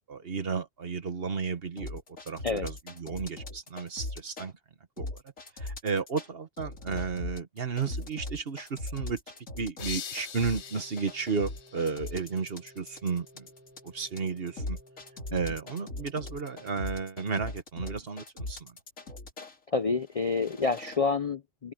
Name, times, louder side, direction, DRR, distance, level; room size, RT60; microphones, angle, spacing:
voice 1, 0.0-4.5 5.0-5.2 5.6-9.2 9.6-13.5 13.8-14.8 15.3-18.7, right 5 dB, 50° right, 1.4 m, -33 dB
sound 1, 1.8-4.5 5.0-6.3 6.6-19.5 20.1-21.0, left 2 dB, 85° left, 3.9 m, -39 dB
sound 2, 9.8-12.6, left 7 dB, 65° left, 1.2 m, -43 dB
sound 3, 10.6-16.8, equal, 10° right, 5.5 m, -57 dB
voice 2, 19.7-21.7, left 4 dB, 40° left, 0.6 m, -28 dB
open air
omnidirectional pair, 1.3 m